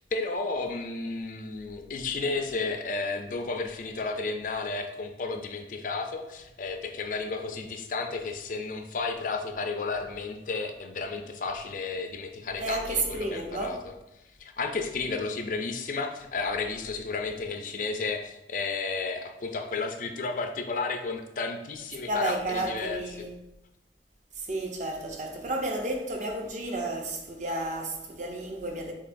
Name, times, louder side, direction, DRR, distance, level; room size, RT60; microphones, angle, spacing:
voice 1, 0.0-13.9 14.4-23.0, left 4 dB, 45° left, 0.4 m, -32 dB
voice 2, 12.6-13.8 22.1-23.3 24.4-28.9, right 2 dB, 40° right, 0.6 m, -32 dB
6.8 x 2.8 x 2.5 m
head